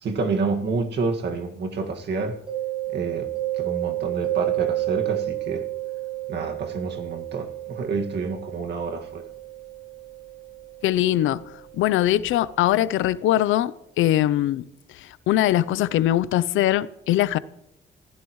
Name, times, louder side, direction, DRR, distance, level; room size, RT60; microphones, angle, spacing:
voice 1, 0.0-2.4 2.9-3.3 3.6-5.6 6.3-9.2, right 4 dB, 60° right, 2.0 m, -28 dB
Mallet percussion, 2.5-12.0, right 16 dB, 30° right, 3.8 m, -31 dB
voice 2, 10.8-11.4 11.7-14.6 14.9-17.4, left 13 dB, 85° left, 0.6 m, -21 dB
29.0 x 15.5 x 3.2 m
cardioid pair, 90°, 20 cm